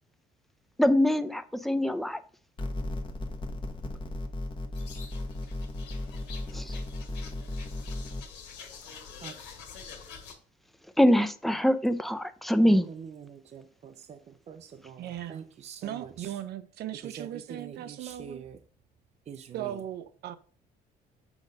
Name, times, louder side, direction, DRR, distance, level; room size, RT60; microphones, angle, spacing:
voice 1, 0.8-2.2 6.5-6.8 11.0-12.9, equal, ahead, 0.6 m, -24 dB
sound 1, 2.6-8.2, left 1 dB, 30° left, 1.1 m, -35 dB
sound 2, 4.7-10.3, left 6 dB, 90° left, 2.0 m, -47 dB
voice 2, 12.6-16.4 17.0-18.6 19.3-19.8, right 7 dB, 40° right, 0.6 m, -45 dB
voice 3, 15.0-15.4 15.8-18.4 19.5-20.4, right 11 dB, 70° right, 0.7 m, -38 dB
7.2 x 3.9 x 5.2 m
cardioid pair, 110°, 17 cm